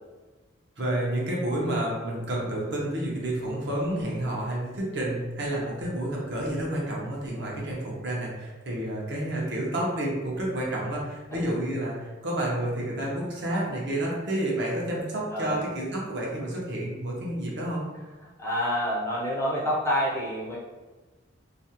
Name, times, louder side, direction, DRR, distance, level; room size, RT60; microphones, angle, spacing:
voice 1, 0.8-17.8, right 1 dB, 60° right, -3 dB, 0.6 m, -30 dB
voice 2, 18.4-20.6, equal, 15° left, -6 dB, 0.4 m, -27 dB
2.4 x 2.1 x 2.7 m, 1.2 s
head